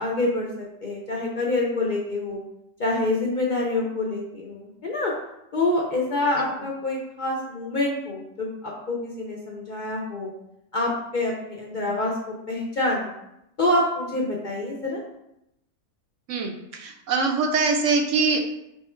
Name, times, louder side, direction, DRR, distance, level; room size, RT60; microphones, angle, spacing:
voice 1, 0.0-2.4 2.8-5.1 5.5-10.3 10.7-13.1 13.6-15.0, left 2 dB, 50° left, -2 dB, 0.6 m, -26 dB
voice 2, 16.3-18.4, right 4 dB, 70° right, 4 dB, 0.9 m, -23 dB
3.6 x 3.4 x 4.3 m, 0.83 s
omnidirectional pair, 1.4 m